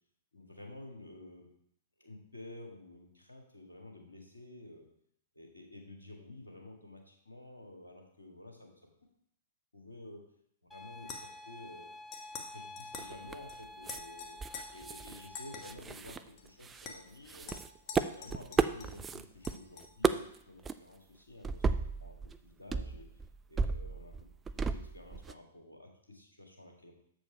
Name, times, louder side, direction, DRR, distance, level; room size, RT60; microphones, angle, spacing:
voice 1, 0.3-1.5 2.0-4.9 5.3-8.7 9.7-10.2 10.6-11.9 12.3-14.4 14.7-17.6 17.9-22.2 22.4-23.1 23.5-24.2 24.5-26.9, left 2 dB, 85° left, 1 dB, 1.8 m, -51 dB
sound 1, 10.7-15.7, left 2 dB, 5° left, 0.8 m, -50 dB
sound 2, 11.0-11.5 12.1-12.5 12.8-13.1 13.5-13.6 13.9-14.6 15.3-15.6 16.4-16.5 16.8-17.0 17.5-19.0 19.4-19.9, left 5 dB, 35° left, 1.3 m, -46 dB
sound 3, 12.9-13.5 13.9-14.0 14.4-15.3 15.5-16.9 17.3-19.6 19.8-20.4 20.6-20.7 21.4-22.4 22.7-25.3, right 5 dB, 15° right, 0.4 m, -34 dB
7.4 x 5.1 x 4.9 m, 0.69 s
figure-of-eight pair, 105°, 0 cm